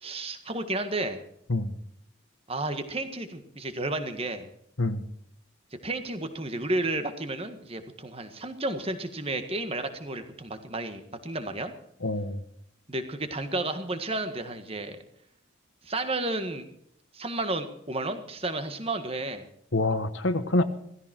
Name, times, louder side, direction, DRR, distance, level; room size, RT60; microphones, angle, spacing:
voice 1, 0.0-1.2 2.5-4.5 5.8-11.7 12.9-15.0 15.8-16.7 17.1-19.4, right 2 dB, 30° right, 8 dB, 1.7 m, -32 dB
voice 2, 12.0-12.4 19.7-20.6, left 2 dB, 70° left, 9 dB, 1.3 m, -26 dB
16.5 x 16.0 x 4.5 m, 0.71 s
head